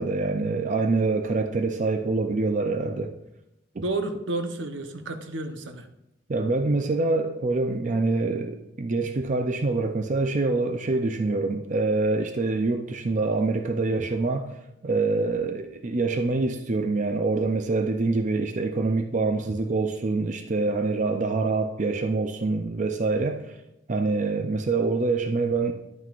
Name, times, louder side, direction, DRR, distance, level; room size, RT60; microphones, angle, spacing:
voice 1, 0.0-3.1 6.3-23.6 23.9-25.7, right 3 dB, 40° right, 6 dB, 0.5 m, -25 dB
voice 2, 3.8-5.9, right 2 dB, 80° right, 6 dB, 0.9 m, -31 dB
11.0 x 9.3 x 2.5 m, 0.87 s
head